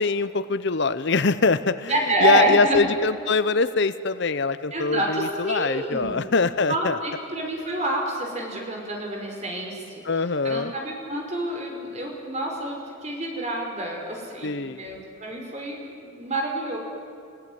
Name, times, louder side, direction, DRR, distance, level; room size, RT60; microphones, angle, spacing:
voice 1, 0.0-1.9 2.2-7.0 10.0-10.7 14.4-14.8, left 4 dB, 60° left, 14 dB, 0.8 m, -23 dB
voice 2, 1.9-2.8 4.7-6.2 6.7-10.0 10.4-16.8, right 1 dB, 35° right, 0 dB, 5.2 m, -27 dB
29.5 x 17.0 x 9.5 m, 2.6 s
head